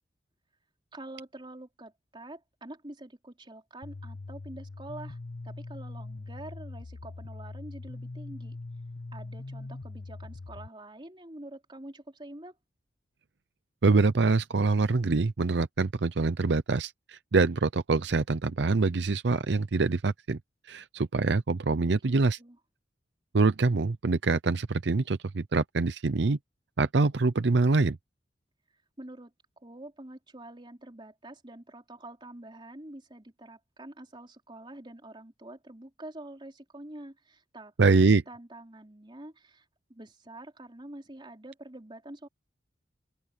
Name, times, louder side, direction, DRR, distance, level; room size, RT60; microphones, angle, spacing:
voice 1, 0.9-5.2 5.4-8.6 9.1-12.6 21.7-22.6 29.0-42.3, right 1 dB, 25° right, 3.6 m, -46 dB
sound 1, 3.8-10.7, left 2 dB, 85° left, 0.9 m, -42 dB
voice 2, 13.8-20.4 20.7-22.4 23.3-26.4 26.8-28.0 37.8-38.2, right 3 dB, 70° right, 0.6 m, -25 dB
open air
head